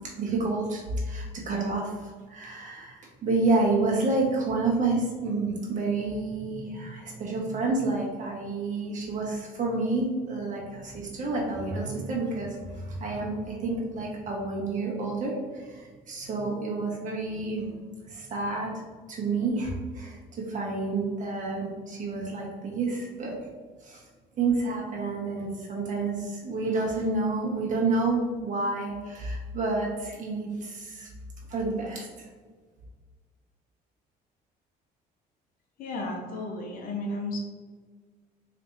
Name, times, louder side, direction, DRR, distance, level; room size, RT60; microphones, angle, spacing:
voice 1, 0.2-17.7 18.1-18.7 19.1-20.2 20.5-23.3 23.8-24.0 24.4-31.1 31.5-32.1, right 3 dB, 50° right, -3 dB, 1.3 m, -29 dB
voice 2, 35.8-37.4, left 2 dB, 60° left, 1 dB, 0.9 m, -33 dB
4.3 x 3.3 x 2.8 m, 1.4 s
cardioid pair, 110°, 17 cm